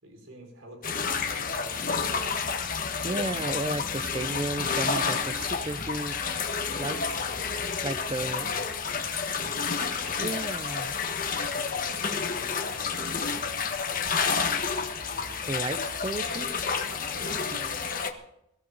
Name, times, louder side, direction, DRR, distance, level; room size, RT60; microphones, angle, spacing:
voice 1, 0.0-2.5 7.4-10.5 11.7-14.6 15.0-15.4 15.7-15.9 16.7-17.8, right 1 dB, 85° right, 5.5 m, -49 dB
sound 1, 0.8-18.1, left 5 dB, 45° left, 1.5 m, -30 dB
voice 2, 3.0-6.3 6.8-7.2 7.8-8.5 10.2-11.0 15.5-16.6, right 2 dB, 25° right, 0.6 m, -33 dB
23.0 x 14.5 x 4.1 m
head